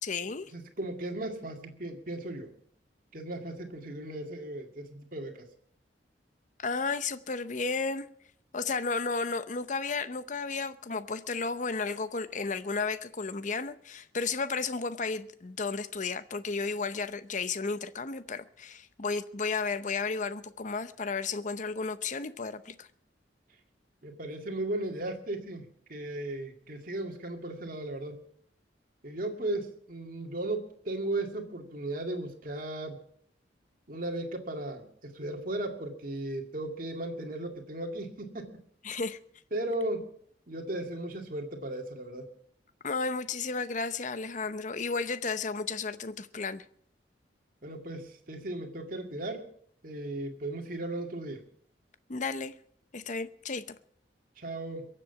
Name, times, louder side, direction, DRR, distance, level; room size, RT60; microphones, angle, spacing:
voice 1, 0.0-0.5 6.6-8.1 8.5-22.9 38.8-39.2 42.8-46.6 52.1-52.5 52.9-53.6, left 4 dB, 45° left, 0.8 m, -33 dB
voice 2, 0.5-2.5 3.1-5.5 24.0-28.2 29.0-33.0 33.9-38.5 39.5-40.1 40.5-42.3 47.6-49.5 49.8-51.4 54.4-54.9, right 1 dB, 50° right, 2.2 m, -36 dB
22.5 x 7.7 x 7.1 m
head